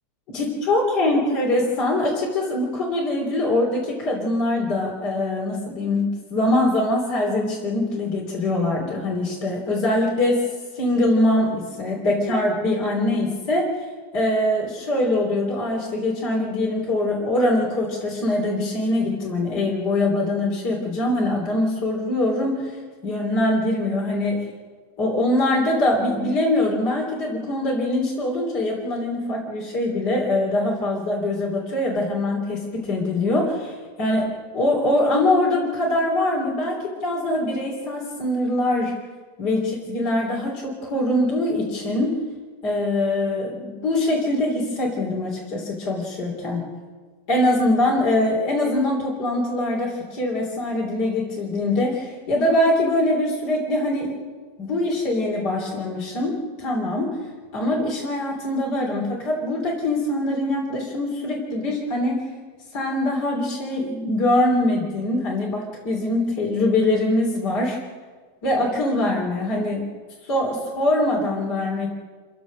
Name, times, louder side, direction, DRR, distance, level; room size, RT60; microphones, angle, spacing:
voice 1, 0.3-10.5 10.7-13.7 14.1-22.8 23.0-24.5 25.0-39.0 39.4-42.2 42.6-46.7 47.3-54.1 54.6-57.2 57.5-62.3 62.7-67.8 68.4-69.9 70.3-71.9, left 1 dB, 35° left, -3 dB, 3.7 m, -23 dB
28.5 x 15.5 x 6.4 m, 1.5 s
omnidirectional pair, 3.4 m